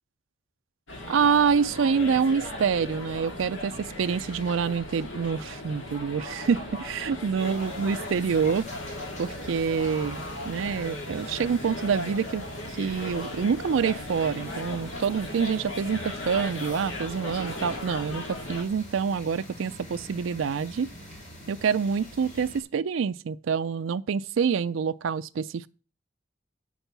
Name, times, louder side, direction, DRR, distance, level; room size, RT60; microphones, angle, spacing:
sound 1, 0.9-18.6, left 1 dB, 75° left, 2.3 m, -37 dB
voice 1, 1.1-8.6 9.2-20.9 21.5-25.7, right 6 dB, 80° right, 0.4 m, -27 dB
sound 2, 7.4-22.6, equal, 40° left, 3.8 m, -45 dB
8.8 x 6.2 x 6.8 m
head